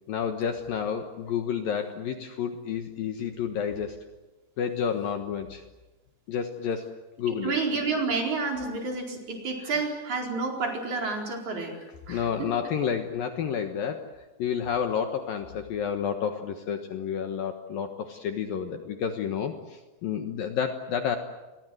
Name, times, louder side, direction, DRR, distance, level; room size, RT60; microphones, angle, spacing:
voice 1, 0.1-4.0 4.6-5.6 6.3-6.9 7.2-7.5 9.6-9.7 11.7-21.2, left 7 dB, 65° left, 6 dB, 2.7 m, -30 dB
voice 2, 7.3-11.7 12.1-12.5, right 4 dB, 40° right, 1 dB, 5.5 m, -30 dB
29.0 x 23.0 x 7.9 m, 1.2 s
omnidirectional pair, 5.2 m